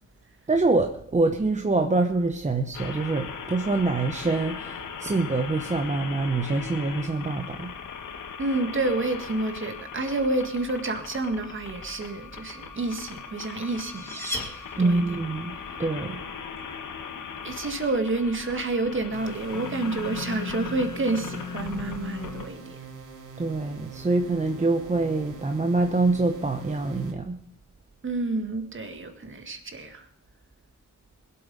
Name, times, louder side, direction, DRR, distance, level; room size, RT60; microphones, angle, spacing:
voice 1, 0.5-7.7 14.8-16.2 23.4-27.4, right 3 dB, 25° right, 5 dB, 0.9 m, -25 dB
sound 1, 2.7-22.5, left 6 dB, 80° left, 1.6 m, -38 dB
voice 2, 8.4-14.3 14.8-15.2 17.4-22.9 28.0-30.1, right 2 dB, 40° right, 7 dB, 1.8 m, -29 dB
sound 2, 13.6-15.3, equal, 10° left, 2.7 m, -37 dB
sound 3, 19.1-27.1, right 5 dB, 85° right, 2.5 m, -44 dB
21.0 x 8.3 x 5.3 m, 0.65 s
wide cardioid pair, 120°, 31 cm